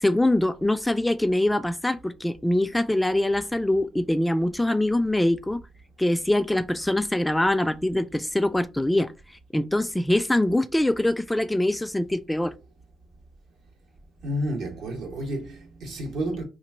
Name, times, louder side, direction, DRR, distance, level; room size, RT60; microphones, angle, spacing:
voice 1, 0.0-5.6 6.0-9.1 9.5-12.5, left 1 dB, 10° left, 0.3 m, -23 dB
voice 2, 14.2-16.4, equal, 80° right, 1.3 m, -30 dB
2.9 x 2.5 x 4.3 m
cardioid pair, 90°, 0 cm